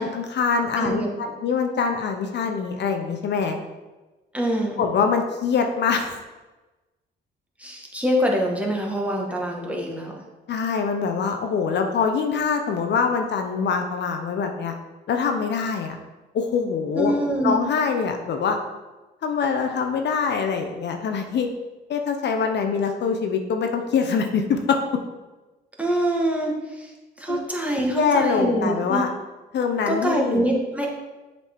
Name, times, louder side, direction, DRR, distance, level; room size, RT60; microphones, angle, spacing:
voice 1, 0.0-3.6 4.8-6.2 10.5-14.7 15.1-16.0 16.3-17.1 17.4-18.6 19.2-21.5 21.9-24.8 27.3-27.4 27.9-29.1 29.5-30.4, left 5 dB, 60° left, 4 dB, 0.7 m, -24 dB
voice 2, 0.8-1.1 4.3-4.8 7.6-10.1 16.9-17.6 25.8-26.9 27.2-29.0 29.9-30.9, right 1 dB, 5° right, -1 dB, 1.3 m, -24 dB
7.2 x 4.1 x 3.5 m, 1.2 s
cardioid pair, 90°, 20 cm